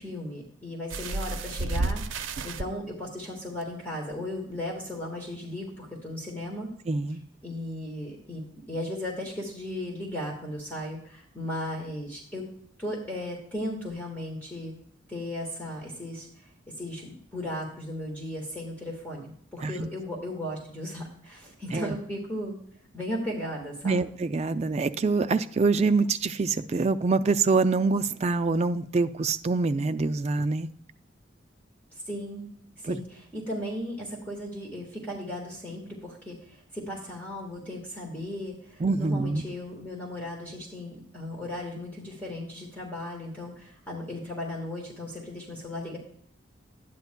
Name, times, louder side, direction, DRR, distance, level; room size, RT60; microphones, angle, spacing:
voice 1, 0.0-6.7 7.4-12.4 12.8-14.7 15.1-16.5 16.8-22.6 22.9-24.0 32.1-32.4 32.8-46.0, left 1 dB, 10° left, -3 dB, 1.5 m, -36 dB
sound 1, 0.9-2.6 3.6-3.7 4.1-4.2, right 3 dB, 85° right, 0.5 m, -31 dB
voice 2, 6.9-7.2 19.6-19.9 21.7-21.9 23.8-30.7 32.9-33.0 38.8-39.4, right 3 dB, 35° right, 10 dB, 0.3 m, -25 dB
11.5 x 9.3 x 2.2 m, 0.64 s
head